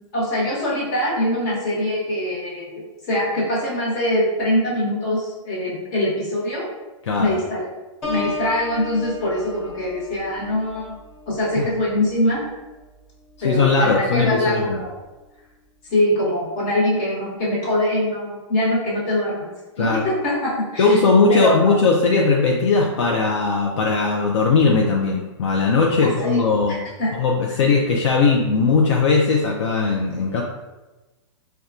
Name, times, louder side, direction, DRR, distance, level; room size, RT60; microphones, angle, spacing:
voice 1, 0.1-6.7 7.2-7.7 8.1-11.0 11.3-12.5 13.4-15.0 15.9-19.5 19.8-21.0 21.3-21.8 26.0-26.4 26.7-27.1, left 1 dB, 35° left, -6 dB, 1.1 m, -23 dB
Piano, 8.0-13.6 14.1-14.5, left 3 dB, 15° left, 0.5 m, -35 dB
voice 2, 13.4-14.8 19.8-20.0 20.8-26.7 27.1-30.4, left 4 dB, 65° left, -1 dB, 0.4 m, -19 dB
4.1 x 2.2 x 2.4 m, 1.1 s
hypercardioid pair, 165°, 16 cm